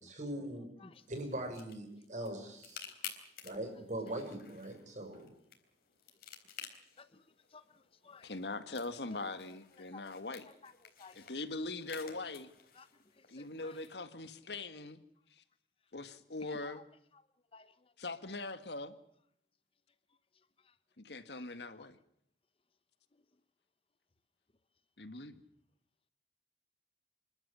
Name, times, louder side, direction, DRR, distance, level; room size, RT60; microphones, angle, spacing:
voice 1, 0.0-0.7 1.1-2.8 3.4-5.3, right 1 dB, 45° right, 5 dB, 5.9 m, -41 dB
sound 1, 0.9-13.9, left 8 dB, 60° left, 3.7 m, -53 dB
voice 2, 7.0-8.3 9.1-9.4 9.8-10.1 10.5-11.3 12.7-12.9 13.1-13.9 16.4-16.8 17.1-17.2 17.5-17.9 20.6-20.7 21.7-21.9, left 4 dB, 30° left, 13 dB, 0.9 m, -57 dB
voice 3, 8.2-10.4 11.3-12.5 13.3-15.0 15.9-16.8 18.0-18.9 21.0-21.9 25.0-25.4, left 2 dB, 75° left, 11 dB, 1.7 m, -41 dB
28.0 x 12.5 x 9.9 m, 0.73 s
head